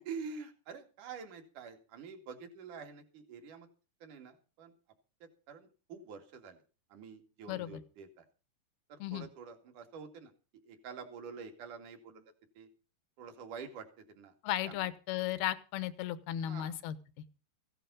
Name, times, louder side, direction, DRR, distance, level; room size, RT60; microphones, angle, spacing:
voice 1, 0.0-3.7 4.0-4.7 5.2-6.6 6.9-8.3 8.9-10.3 10.7-12.3 12.6-12.7 13.2-14.3 14.6-14.9 16.4-16.7, right 5 dB, 55° right, 5 dB, 3.6 m, -47 dB
voice 2, 14.4-17.0, left 12 dB, 80° left, 14 dB, 2.9 m, -35 dB
16.5 x 11.5 x 5.4 m, 0.35 s
omnidirectional pair, 4.7 m